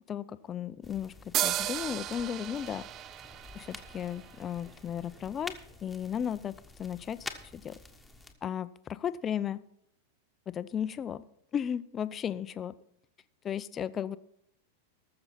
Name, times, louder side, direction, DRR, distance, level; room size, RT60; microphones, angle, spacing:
voice 1, 0.1-1.1 1.4-2.9 3.5-5.5 5.8-6.5 6.8-7.7 8.4-9.6 10.5-11.2 11.5-12.7 13.4-14.2, left 9 dB, 25° left, 14 dB, 0.6 m, -35 dB
sound 1, 0.8-8.3, left 2 dB, 5° left, 1.4 m, -48 dB
sound 2, 1.3-4.9, right 12 dB, 35° right, 0.4 m, -35 dB
20.0 x 6.8 x 4.2 m, 0.73 s
hypercardioid pair, 100°, 0 cm